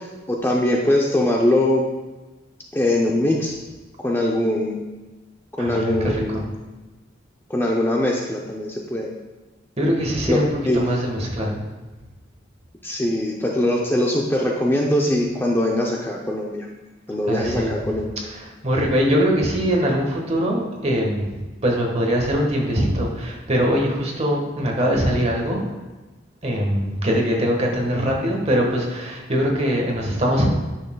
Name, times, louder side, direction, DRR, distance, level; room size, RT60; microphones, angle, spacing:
voice 1, 0.0-1.9 2.7-3.5 4.0-4.9 5.6-6.4 7.5-9.1 10.3-10.4 10.7-10.8 12.8-16.7 17.1-18.1, left 1 dB, 10° left, -1 dB, 0.5 m, -22 dB
voice 2, 5.6-6.4 9.8-11.6 17.3-18.0 18.2-25.7 26.4-30.5, equal, 35° right, -1 dB, 1.4 m, -22 dB
9.7 x 6.4 x 2.3 m, 1.2 s
head